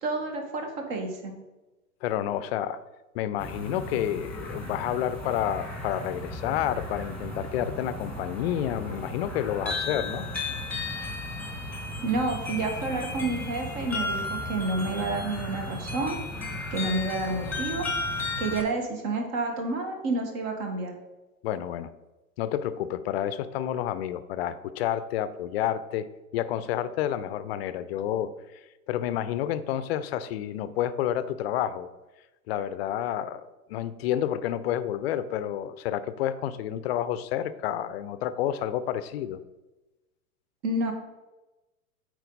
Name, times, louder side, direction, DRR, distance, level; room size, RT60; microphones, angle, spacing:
voice 1, 0.0-1.3 12.0-16.2 16.7-17.9 18.4-20.9 40.6-40.9, right 2 dB, 40° right, 4 dB, 1.6 m, -29 dB
voice 2, 2.0-2.8 3.1-10.3 21.4-21.9 22.4-26.1 26.3-28.3 28.9-31.9 32.5-39.4, left 11 dB, 45° left, 14 dB, 0.5 m, -29 dB
sound 1, 3.4-18.6, left 2 dB, 5° left, 1.5 m, -34 dB
8.1 x 4.5 x 4.0 m, 1.1 s
figure-of-eight pair, 105°, 43 cm